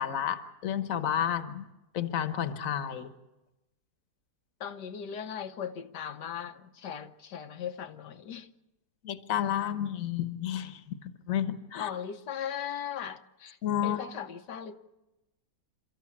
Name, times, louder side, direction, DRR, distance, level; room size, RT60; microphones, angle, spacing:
voice 1, 0.0-1.7 1.9-3.1 9.0-11.9 13.6-14.0, left 10 dB, 55° left, 1.5 m, -31 dB
voice 2, 4.6-8.5 11.8-13.6 13.8-14.8, left 8 dB, 80° left, 1.6 m, -38 dB
28.5 x 14.0 x 8.6 m
omnidirectional pair, 1.8 m